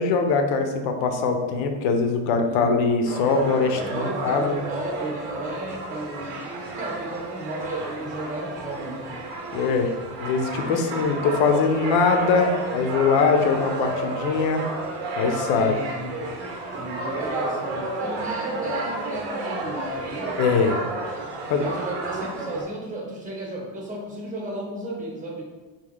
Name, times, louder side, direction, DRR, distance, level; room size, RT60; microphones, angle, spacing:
voice 1, 0.0-4.5 9.5-9.9 10.2-14.6 15.2-15.7 20.4-20.8 21.5-21.6, left 4 dB, 65° left, 5 dB, 0.7 m, -22 dB
sound 1, 3.0-22.6, right 2 dB, 90° right, 0.8 m, -31 dB
voice 2, 3.7-6.5 6.7-9.3 15.6-16.2 16.7-20.3 21.6-25.4, right 1 dB, 15° right, -2 dB, 0.9 m, -34 dB
3.6 x 2.3 x 3.6 m, 1.3 s
cardioid pair, 120°, 50 cm